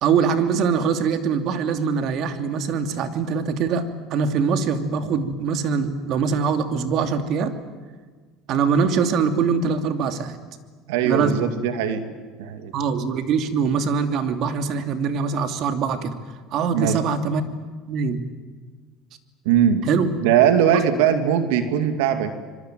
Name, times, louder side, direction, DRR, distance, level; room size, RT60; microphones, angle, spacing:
voice 1, 0.0-3.8 4.1-7.5 8.5-10.4 11.0-11.4 12.7-16.1 16.5-17.4 17.9-18.2 19.9-20.1 20.7-20.8, right 6 dB, 55° right, 7 dB, 2.8 m, -23 dB
voice 2, 10.9-12.0 12.4-12.7 16.7-17.0 19.4-19.9 20.2-22.3, right 9 dB, 85° right, 8 dB, 2.4 m, -20 dB
26.0 x 23.0 x 9.2 m, 1.5 s
supercardioid pair, 115°, 0 cm